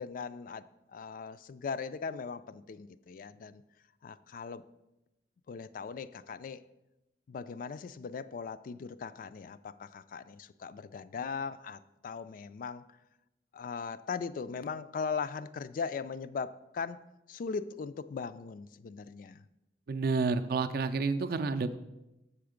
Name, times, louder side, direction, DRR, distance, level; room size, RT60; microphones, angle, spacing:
voice 1, 0.0-3.6 4.0-4.6 5.5-6.6 7.3-12.9 13.5-17.0 17.3-19.4, left 5 dB, 50° left, 14 dB, 0.3 m, -39 dB
voice 2, 19.9-21.8, right 4 dB, 60° right, 9 dB, 0.4 m, -30 dB
6.9 x 6.4 x 5.0 m, 0.95 s
head